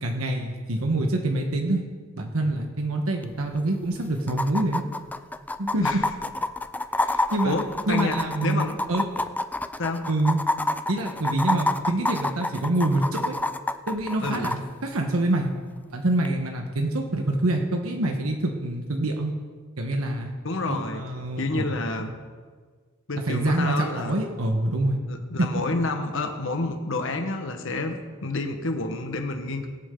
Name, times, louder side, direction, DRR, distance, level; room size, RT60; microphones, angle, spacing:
voice 1, 0.0-1.8 2.2-4.8 5.6-6.0 7.3-7.6 7.9-9.0 10.1-10.4 10.9-13.4 13.9-15.5 15.9-19.3 19.8-20.3 20.7-21.6 22.0-22.1 23.3-25.0 25.4-25.6, right 1 dB, 85° right, 2 dB, 1.3 m, -26 dB
sound 1, 3.2-3.3 3.6-3.7 4.3-14.6 16.2-16.3, left 2 dB, 10° left, 0.4 m, -27 dB
voice 2, 6.9-8.9 9.8-10.1 14.2-14.5 20.4-21.0 21.4-22.1 23.1-24.1 25.1-27.9 28.2-29.7, left 2 dB, 65° left, 5 dB, 1.4 m, -29 dB
22.5 x 8.6 x 3.9 m, 1.5 s
head